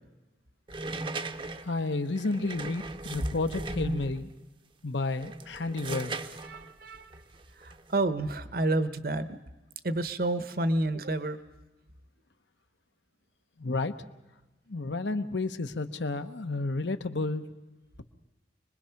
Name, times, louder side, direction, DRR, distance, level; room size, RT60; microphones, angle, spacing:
sound 1, 0.7-4.4 5.1-8.0, right 2 dB, 30° right, 0.7 m, -38 dB
voice 1, 1.6-4.3 4.8-6.1 13.6-13.9 14.7-17.4, left 3 dB, 85° left, 9 dB, 1.0 m, -31 dB
voice 2, 6.4-7.1 7.6-9.4 9.8-11.4, right 2 dB, 55° right, 12 dB, 0.9 m, -29 dB
26.0 x 21.0 x 5.8 m, 1.1 s
head